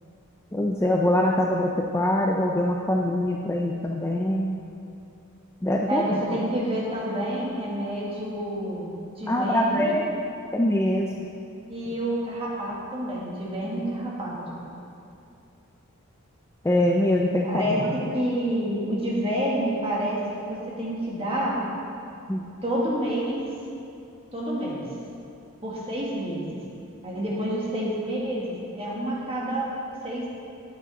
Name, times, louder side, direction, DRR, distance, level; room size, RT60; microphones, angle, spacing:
voice 1, 0.5-4.6 5.6-6.4 9.3-10.1 10.5-11.1 16.6-17.9 22.3-22.4, left 1 dB, 10° left, -1 dB, 0.4 m, -23 dB
voice 2, 5.9-9.9 11.7-14.6 17.4-17.8 18.1-21.6 22.6-23.4 24.3-24.9 25.6-26.5 27.0-29.7 30.0-30.3, right 1 dB, 25° right, -5 dB, 1.8 m, -28 dB
9.8 x 8.3 x 4.1 m, 2.7 s
head